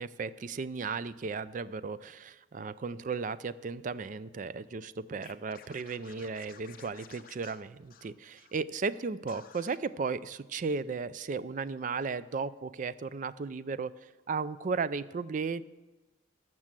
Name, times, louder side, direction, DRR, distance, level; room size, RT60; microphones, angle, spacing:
voice 1, 0.0-15.6, right 4 dB, 40° right, 16 dB, 0.3 m, -35 dB
Scratching (performance technique), 5.2-8.5 8.8-9.0 9.3-9.8, left 7 dB, 45° left, 0.7 m, -54 dB
13.5 x 6.1 x 7.5 m, 1.1 s
head